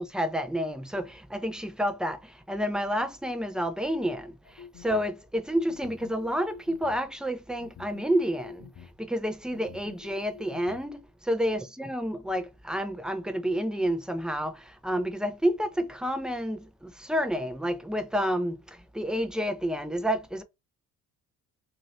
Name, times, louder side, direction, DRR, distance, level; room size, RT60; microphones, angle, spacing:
voice 1, 0.0-8.7 9.0-20.4, equal, ahead, 0.7 m, -30 dB
sound 1, 4.4-5.1 5.7-7.1 7.6-8.9 9.5-10.8, left 8 dB, 40° left, 1.0 m, -48 dB
2.9 x 2.8 x 4.0 m
hypercardioid pair, 55°, 43 cm